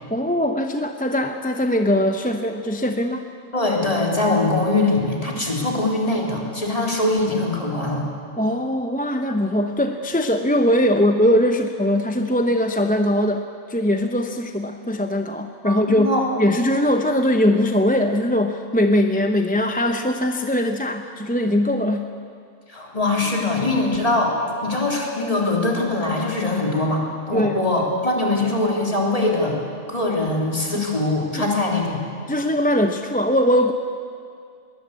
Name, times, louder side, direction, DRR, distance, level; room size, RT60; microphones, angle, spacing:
voice 1, 0.1-3.2 8.4-22.1 27.3-27.7 30.7-30.8 31.3-31.4 32.3-33.7, left 1 dB, 10° left, 5 dB, 0.7 m, -21 dB
voice 2, 3.5-8.1 15.6-16.4 22.7-29.6 29.9-32.0, left 2 dB, 30° left, -2 dB, 3.6 m, -22 dB
21.5 x 19.0 x 8.3 m, 2.3 s
omnidirectional pair, 1.2 m